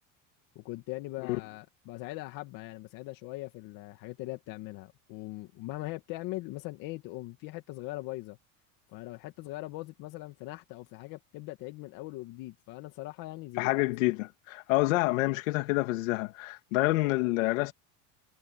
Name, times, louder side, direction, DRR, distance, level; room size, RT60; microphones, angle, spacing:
voice 1, 0.6-8.4 8.9-13.7, left 19 dB, 55° left, 2.1 m, -41 dB
voice 2, 13.6-17.7, left 20 dB, 85° left, 2.5 m, -27 dB
supercardioid pair, 140°, 39 cm